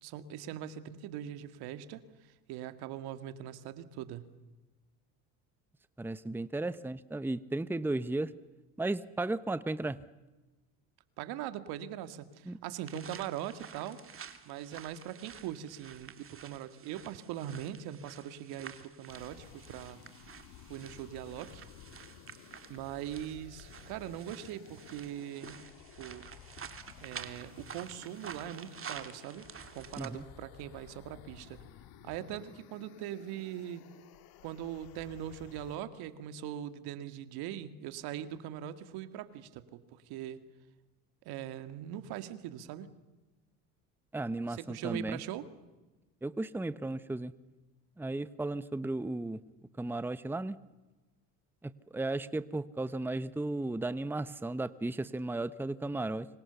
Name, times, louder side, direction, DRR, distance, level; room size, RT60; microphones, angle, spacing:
voice 1, 0.0-4.3 11.2-14.0 14.5-20.0 20.6-21.6 22.7-25.6 26.0-26.3 27.0-29.5 29.7-31.6 32.0-33.8 34.4-40.4 41.3-42.9 44.5-45.5, right 11 dB, 75° right, 11 dB, 2.1 m, -41 dB
voice 2, 6.0-8.3 8.8-10.0 12.5-12.6 30.0-30.2 44.1-45.2 46.2-47.3 48.0-49.4 49.8-50.6 51.6-56.3, right 2 dB, 5° right, 15 dB, 0.9 m, -35 dB
sound 1, 12.9-30.1, right 7 dB, 35° right, 2.6 m, -49 dB
sound 2, 19.1-35.8, left 10 dB, 70° left, 2.0 m, -55 dB
27.5 x 25.5 x 7.0 m, 1.1 s
supercardioid pair, 90°, 39 cm